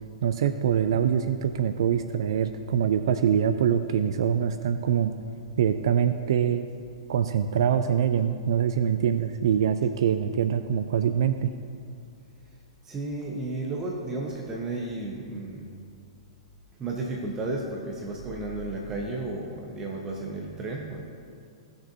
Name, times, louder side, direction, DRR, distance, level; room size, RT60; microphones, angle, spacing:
voice 1, 0.2-5.1 5.6-6.7 7.1-11.5, right 8 dB, 55° right, 10 dB, 0.4 m, -24 dB
voice 2, 12.9-15.7 16.8-21.0, right 2 dB, 20° right, -1 dB, 1.0 m, -33 dB
17.0 x 6.7 x 2.7 m, 2.3 s
figure-of-eight pair, 105°, 3 cm